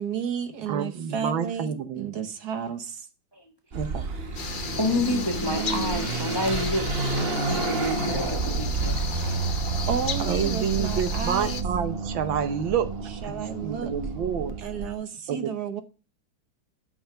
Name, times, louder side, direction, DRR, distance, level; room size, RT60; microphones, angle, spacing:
voice 1, 0.0-3.1 9.9-11.6 13.2-13.9 14.6-15.8, right 7 dB, 60° right, 1.5 m, -32 dB
voice 2, 0.7-2.1 3.7-4.1 4.7-5.0 10.2-12.9 13.2-13.4 13.6-14.5 15.3-15.5, right 7 dB, 80° right, 1.8 m, -29 dB
Car passing by / Accelerating revving vroom, 3.7-14.9, right 4 dB, 40° right, 1.0 m, -30 dB
sound 1, 4.3-11.6, left 6 dB, 80° left, 0.4 m, -35 dB
voice 3, 4.8-9.1, left 1 dB, 15° left, 1.0 m, -29 dB
8.7 x 5.7 x 5.8 m
omnidirectional pair, 2.1 m